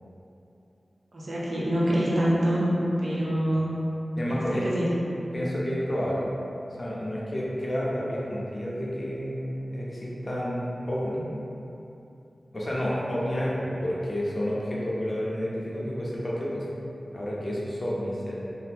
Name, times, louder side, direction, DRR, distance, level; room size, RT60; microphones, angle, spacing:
voice 1, 1.1-2.6 3.0-3.9 4.4-5.0, equal, 70° right, -7 dB, 0.6 m, -26 dB
voice 2, 4.2-4.7 5.3-6.2 6.7-11.2 12.5-16.6 17.1-18.3, equal, 45° left, -6 dB, 0.6 m, -30 dB
2.8 x 2.1 x 3.5 m, 2.9 s
wide cardioid pair, 65°, 0 cm